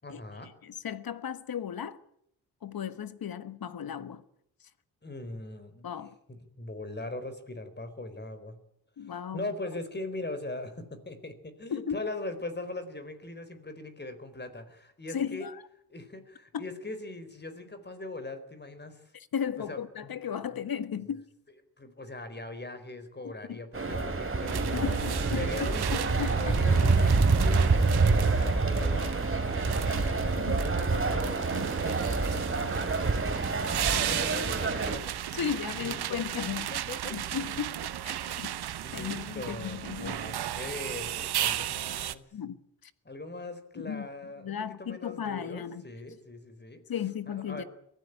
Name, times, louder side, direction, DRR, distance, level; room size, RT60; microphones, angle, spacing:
voice 1, 0.0-0.5 5.0-5.9 6.3-8.6 9.0-15.5 15.9-19.0 19.6-20.2 20.5-20.6 21.8-25.0 25.4-26.1 26.4-27.7 28.3-33.1 33.7-36.2 36.5-37.2 38.1-38.5 38.8-42.2 43.0-46.8 47.3-47.7, left 2 dB, 25° left, 4.3 m, -41 dB
voice 2, 0.6-2.0 2.6-4.2 5.8-6.2 9.0-9.4 11.7-12.0 15.1-15.6 16.5-16.6 19.1-21.3 23.2-23.6 24.7-26.5 29.9-30.0 30.4-30.6 31.5-31.7 32.6-32.8 35.3-36.7 37.1-38.5 38.9-40.2 42.3-42.9 43.7-44.1 44.4-45.8 46.9-47.6, left 8 dB, 65° left, 1.6 m, -35 dB
sound 1, 23.7-35.0, right 3 dB, 35° right, 3.0 m, -27 dB
sound 2, 24.5-42.1, right 11 dB, 85° right, 1.0 m, -35 dB
23.0 x 16.0 x 8.9 m
cardioid pair, 80°, 38 cm